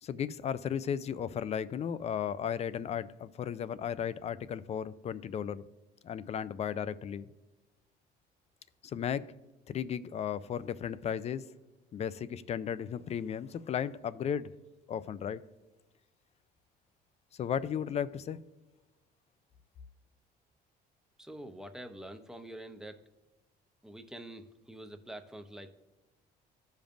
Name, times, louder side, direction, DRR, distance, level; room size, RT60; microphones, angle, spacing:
voice 1, 0.0-5.6 6.0-7.3 8.8-9.3 9.7-11.4 11.9-14.5 14.9-15.4 17.3-18.4, left 8 dB, 40° left, 0.4 m, -35 dB
voice 2, 21.2-23.0 23.8-25.7, right 1 dB, 5° right, 0.7 m, -46 dB
15.5 x 5.2 x 2.5 m
cardioid pair, 110°, 17 cm